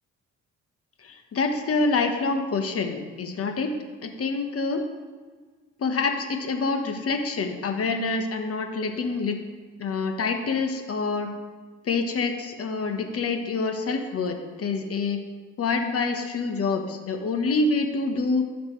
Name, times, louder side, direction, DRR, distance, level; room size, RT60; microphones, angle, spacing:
voice 1, 1.0-3.7 4.0-4.8 5.8-9.4 9.8-11.3 11.8-15.2 15.6-18.4, left 4 dB, 50° left, 5 dB, 1.3 m, -26 dB
14.5 x 5.9 x 3.3 m, 1.5 s
cardioid pair, 90°, 30 cm